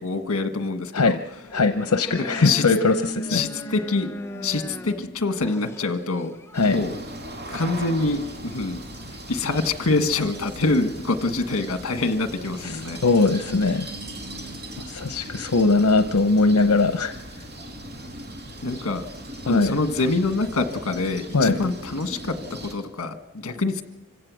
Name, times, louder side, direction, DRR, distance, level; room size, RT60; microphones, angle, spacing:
voice 1, 0.0-1.2 2.4-2.6 3.3-4.1 4.4-6.3 6.7-7.0 7.5-8.8 9.3-13.0 18.6-19.1 19.5-23.8, left 3 dB, 65° left, 7 dB, 1.6 m, -25 dB
sound 1, 1.4-6.6, equal, 10° left, 0.8 m, -36 dB
voice 2, 1.5-3.4 6.5-6.8 12.6-13.9 14.9-17.1 19.5-19.8 21.3-21.6, left 3 dB, 85° left, 8 dB, 0.8 m, -20 dB
sound 2, 6.5-22.7, right 1 dB, 50° right, 3.0 m, -38 dB
26.5 x 16.5 x 6.3 m, 1.1 s
head